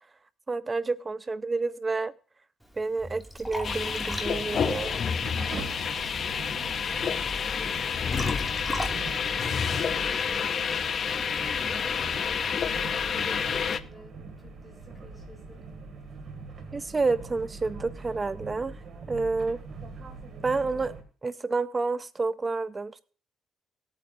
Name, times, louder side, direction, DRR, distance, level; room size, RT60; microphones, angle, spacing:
voice 1, 0.5-2.1 2.8-5.0 16.7-18.8 19.1-19.6 20.4-20.9 21.2-23.0, right 3 dB, 30° right, 0.4 m, -29 dB
Liquid, 2.6-10.4, equal, ahead, 2.1 m, -39 dB
sound 1, 3.6-13.8, left 6 dB, 50° left, 0.6 m, -29 dB
sound 2, 4.3-21.0, right 4 dB, 55° right, 2.2 m, -43 dB
voice 2, 6.4-15.7, left 2 dB, 20° left, 3.7 m, -50 dB
19.5 x 8.5 x 2.6 m
cardioid pair, 90°, 0 cm